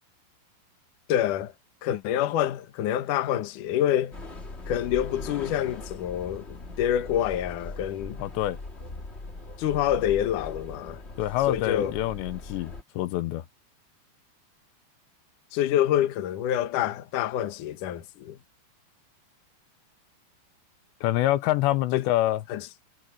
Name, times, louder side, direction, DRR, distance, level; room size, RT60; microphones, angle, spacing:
voice 1, 1.1-1.5 1.8-4.1 4.7-8.2 9.6-11.0 11.5-11.9 15.5-18.4 21.9-22.0 22.5-22.6, left 11 dB, 60° left, 2.4 m, -27 dB
sound 1, 4.1-12.8, left 2 dB, 25° left, 1.5 m, -40 dB
voice 2, 8.2-8.6 11.2-13.4 21.0-22.4, left 15 dB, 90° left, 3.2 m, -26 dB
omnidirectional pair, 5.0 m